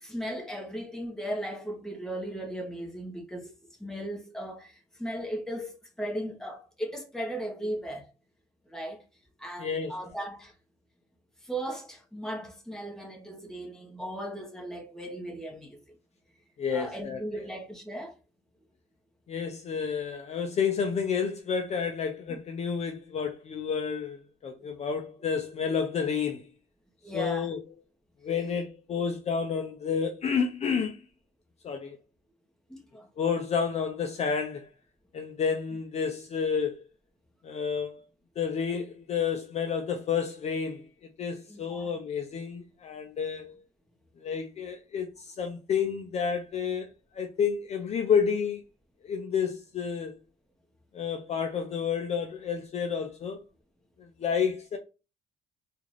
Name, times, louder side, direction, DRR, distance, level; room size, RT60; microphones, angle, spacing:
voice 1, 0.0-3.5 3.8-8.1 8.7-9.0 9.4-10.6 11.4-15.9 16.7-18.2 22.3-22.4 27.0-27.5 32.7-33.1 41.5-41.9, right 1 dB, 5° left, 1.2 m, -37 dB
voice 2, 9.6-10.0 16.6-17.4 19.3-26.4 27.1-27.6 28.2-31.0 31.6-32.0 33.2-34.7 35.1-36.8 37.4-38.0 38.4-40.9 41.2-43.6 44.2-46.9 47.1-48.6 49.0-50.2 50.9-53.4 54.0-54.8, left 6 dB, 40° left, 0.5 m, -30 dB
3.6 x 2.5 x 3.1 m
cardioid pair, 110°, 17 cm